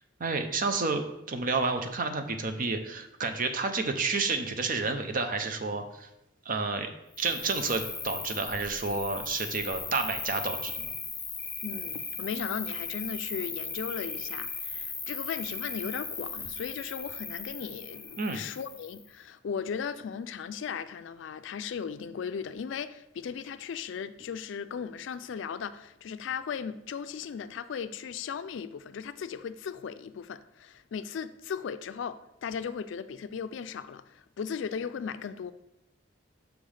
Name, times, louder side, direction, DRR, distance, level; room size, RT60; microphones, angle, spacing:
voice 1, 0.2-6.1 6.5-6.9 7.2-10.7 18.2-18.4, right 4 dB, 45° right, 0.6 m, -30 dB
Cricket, 7.1-19.1, left 4 dB, 10° left, 0.5 m, -38 dB
voice 2, 11.6-35.5, left 6 dB, 70° left, 0.3 m, -37 dB
6.0 x 3.4 x 5.4 m
head